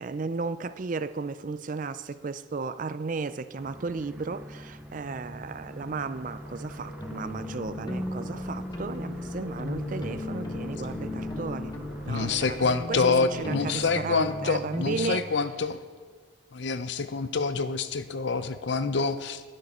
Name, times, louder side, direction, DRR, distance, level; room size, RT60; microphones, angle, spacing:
voice 1, 0.0-11.7 12.0-12.6 12.9-15.3, right 4 dB, 40° right, 13 dB, 0.4 m, -34 dB
sound 1, 3.6-12.7, equal, 5° right, 0.7 m, -43 dB
sound 2, 4.6-14.7, equal, 35° left, 2.8 m, -45 dB
sound 3, 7.0-15.1, left 2 dB, 20° left, 1.0 m, -36 dB
voice 2, 12.1-15.8 16.5-19.4, left 4 dB, 60° left, 12 dB, 0.6 m, -27 dB
12.0 x 10.5 x 4.3 m, 1.5 s
head